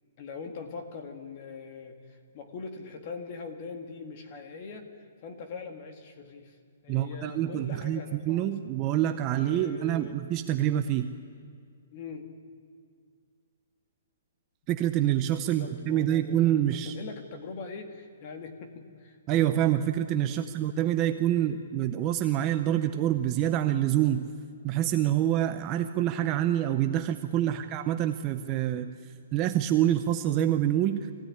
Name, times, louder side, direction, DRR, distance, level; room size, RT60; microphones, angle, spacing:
voice 1, 0.2-6.6 6.8-8.5 9.3-10.2 11.9-12.3 15.4-19.2 20.3-20.5 27.4-27.6, left 4 dB, 25° left, 5 dB, 2.0 m, -42 dB
voice 2, 6.9-11.1 14.7-16.9 19.3-24.3 24.6-28.9 29.3-31.1, right 12 dB, 15° right, 7 dB, 0.6 m, -26 dB
24.0 x 16.5 x 9.8 m, 2.2 s
hypercardioid pair, 180°, 0 cm